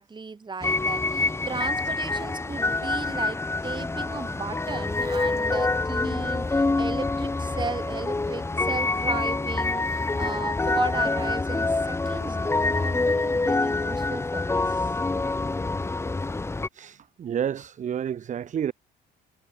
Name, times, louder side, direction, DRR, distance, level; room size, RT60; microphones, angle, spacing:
voice 1, 0.0-15.0, right 4 dB, 25° right, 4.7 m, -36 dB
sound 1, 0.6-16.7, left 3 dB, 15° left, 1.3 m, -26 dB
voice 2, 16.7-18.7, right 9 dB, 40° right, 0.9 m, -30 dB
cardioid pair, 115°, 19 cm